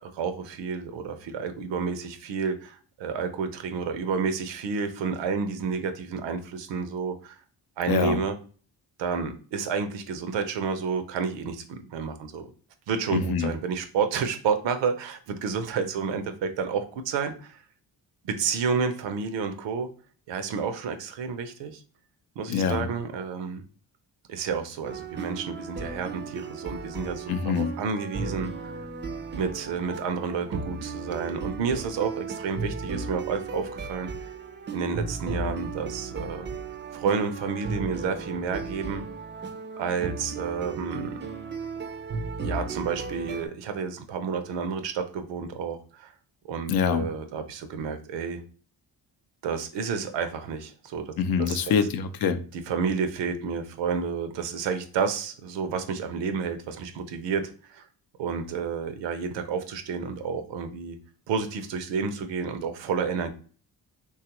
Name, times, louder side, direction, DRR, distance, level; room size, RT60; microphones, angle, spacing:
voice 1, 0.0-7.4 7.8-8.4 9.0-12.5 12.9-17.6 18.2-19.9 20.3-21.8 22.4-23.6 24.3-28.7 29.4-34.1 34.7-36.5 36.9-39.0 39.8-41.1 42.4-46.1 46.4-48.4 49.4-51.1 51.4-51.6 52.5-57.9 58.2-61.0 61.3-63.3, right 5 dB, 85° right, 8 dB, 0.6 m, -30 dB
voice 2, 7.9-8.2 13.1-13.5 22.5-22.9 27.3-27.7 46.7-47.1 51.2-52.4, left 6 dB, 60° left, 10 dB, 0.5 m, -25 dB
sound 1, 24.8-43.5, right 4 dB, 25° right, 0.4 m, -35 dB
3.2 x 2.3 x 2.8 m, 0.41 s
cardioid pair, 75°, 42 cm